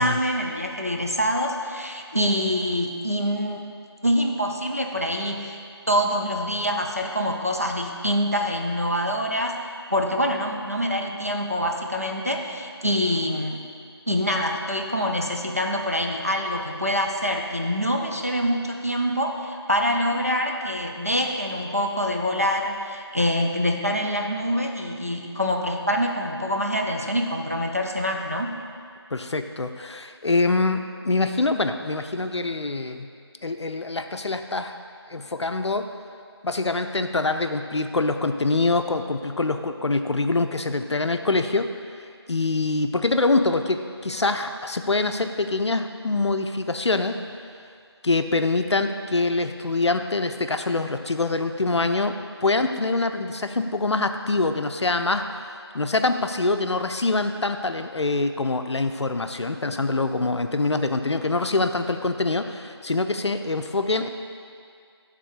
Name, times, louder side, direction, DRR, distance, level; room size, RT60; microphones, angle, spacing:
voice 1, 0.0-3.6 4.0-5.6 5.9-9.6 9.9-13.6 14.1-28.5, equal, 35° right, 1 dB, 0.4 m, -25 dB
voice 2, 29.1-33.1 33.4-34.7 35.1-35.9 36.4-41.7 42.3-47.2 48.0-52.1 52.4-55.4 55.7-64.1, left 3 dB, 85° left, 7 dB, 0.4 m, -24 dB
9.1 x 3.7 x 3.7 m, 2.3 s
figure-of-eight pair, 175°, 14 cm